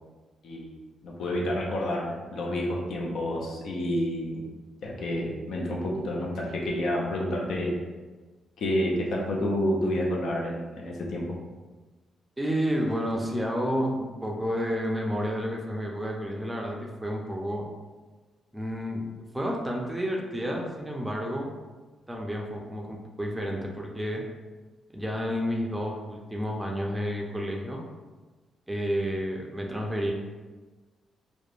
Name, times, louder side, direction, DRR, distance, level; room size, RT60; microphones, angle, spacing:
voice 1, 1.0-4.4 4.8-7.7 8.6-11.3, left 1 dB, 75° left, -2 dB, 0.5 m, -29 dB
voice 2, 12.4-17.7 18.5-19.0 19.3-21.5 22.1-24.2 24.9-27.8 28.7-30.1, equal, 10° right, 0 dB, 0.4 m, -30 dB
2.9 x 2.1 x 2.4 m, 1.3 s
cardioid pair, 90°, 0 cm